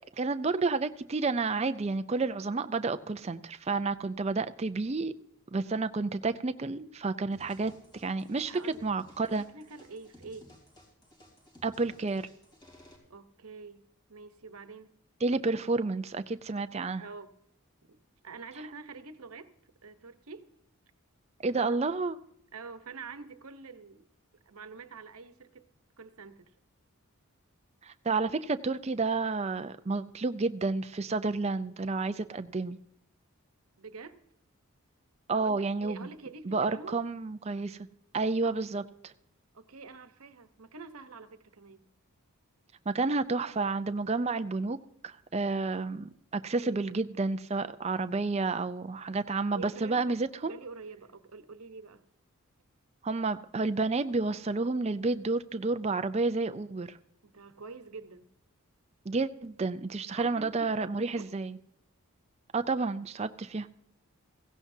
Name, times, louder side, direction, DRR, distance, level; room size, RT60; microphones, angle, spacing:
voice 1, 0.2-5.1 5.5-8.5 8.8-9.4 11.6-12.2 15.2-17.0 21.4-22.2 27.8-32.8 35.3-36.0 36.4-37.8 38.1-39.1 42.9-44.8 45.0-50.5 53.0-57.0 59.1-61.6 62.5-63.7, right 3 dB, 30° right, 0.5 m, -30 dB
sound 1, 7.3-13.0, left 1 dB, 20° left, 3.2 m, -56 dB
voice 2, 8.5-8.9 9.2-10.5 13.1-15.0 17.0-17.4 17.9-19.5 19.8-20.5 21.5-21.8 22.5-24.1 24.4-25.7 26.0-26.5 33.8-34.2 35.3-37.0 38.4-38.5 39.5-41.9 46.6-46.9 49.5-52.0 57.2-58.3 60.1-61.3, right 4 dB, 90° right, 1.1 m, -46 dB
16.5 x 16.0 x 2.7 m
head